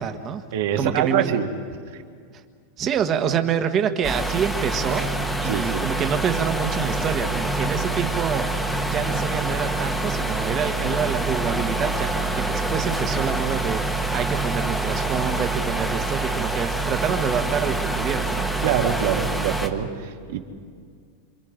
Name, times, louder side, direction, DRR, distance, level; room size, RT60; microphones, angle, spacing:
voice 1, 0.0-0.4 0.8-1.4 2.8-5.1 5.4-18.5, right 7 dB, 25° right, 7 dB, 1.4 m, -27 dB
voice 2, 0.5-1.5 1.9-2.0 5.4-5.9 18.6-20.4, right 9 dB, 65° right, 3 dB, 2.2 m, -25 dB
sound 1, 4.0-19.7, right 2 dB, ahead, 1.3 m, -26 dB
28.0 x 27.5 x 5.2 m, 2.2 s
supercardioid pair, 165°, 0 cm